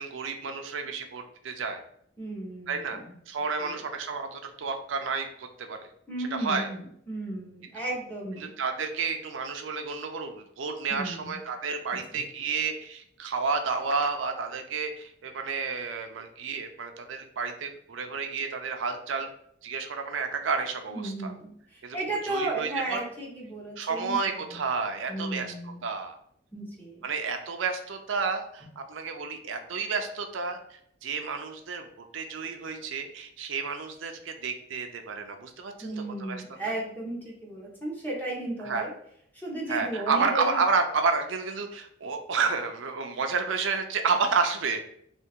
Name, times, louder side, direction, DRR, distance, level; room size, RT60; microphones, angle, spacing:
voice 1, 0.0-1.8 2.7-3.0 3.3-5.8 6.3-6.7 8.4-19.3 19.6-21.3 21.8-22.0 22.2-23.1 23.8-25.5 25.8-26.2 27.0-30.6 31.0-35.9 36.2-36.7 38.6-38.9 39.7-44.8, right 4 dB, 85° right, 5 dB, 0.5 m, -30 dB
voice 2, 2.2-3.1 3.6-3.8 6.1-8.5 10.9-11.4 11.9-12.2 20.9-24.6 25.1-25.8 26.5-27.1 35.8-38.9 39.3-40.6, right 2 dB, 10° left, -4 dB, 1.2 m, -35 dB
3.4 x 2.8 x 4.4 m, 0.68 s
head